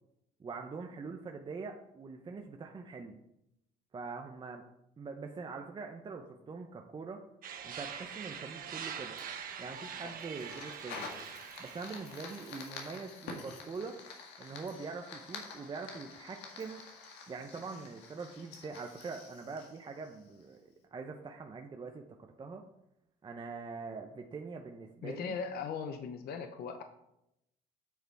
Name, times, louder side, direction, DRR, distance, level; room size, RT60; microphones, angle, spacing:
voice 1, 0.4-3.2 3.9-4.6 5.0-7.2 7.6-9.2 9.6-11.1 11.6-14.0 14.4-16.8 17.3-20.6 20.9-22.6 23.2-25.4, right 4 dB, 30° right, 3 dB, 0.8 m, -43 dB
sound 1, 7.4-12.7, right 7 dB, 55° right, 1.2 m, -44 dB
Fire, 9.2-20.6, left 4 dB, 90° left, 1.9 m, -49 dB
voice 2, 25.0-26.8, left 6 dB, 65° left, 7 dB, 0.8 m, -39 dB
8.3 x 6.6 x 4.7 m, 0.83 s
cardioid pair, 110°, 17 cm